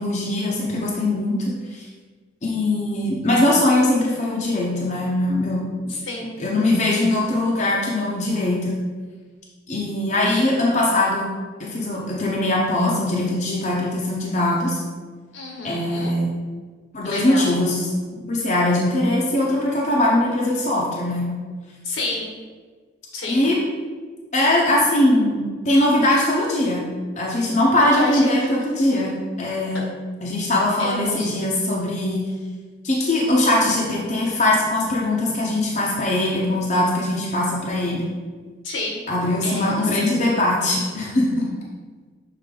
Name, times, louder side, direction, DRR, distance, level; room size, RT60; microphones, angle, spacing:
voice 1, 0.0-1.9 2.4-5.7 6.4-8.8 9.7-11.3 11.6-14.8 15.6-16.3 16.9-17.9 18.3-21.3 23.3-23.6 24.3-26.8 27.2-29.8 30.2-32.3 32.8-38.1 39.1-41.5, left 1 dB, 40° left, -4 dB, 0.8 m, -21 dB
voice 2, 5.9-6.3 10.3-10.4 15.3-16.1 17.0-17.6 21.8-22.3 23.1-23.5 27.8-28.5 30.8-31.4 38.6-39.0 39.4-39.9, left 2 dB, 80° left, -2 dB, 1.5 m, -30 dB
6.6 x 4.0 x 3.8 m, 1.5 s
head